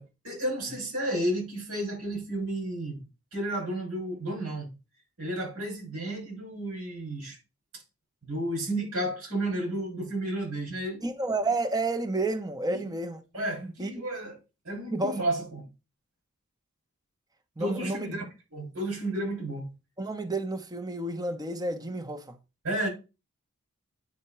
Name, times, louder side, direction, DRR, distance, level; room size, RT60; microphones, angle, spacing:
voice 1, 0.0-3.0 3.3-4.7 5.2-7.4 8.2-11.0 12.7-12.9 13.3-14.4 14.6-15.7 17.6-18.2 18.5-19.7 22.6-22.9, right 1 dB, 65° right, 6.6 m, -32 dB
voice 2, 11.0-13.2 13.6-13.9 14.9-15.2 17.6-18.1 20.0-22.4, right 2 dB, 15° right, 1.0 m, -30 dB
9.3 x 4.4 x 6.0 m
head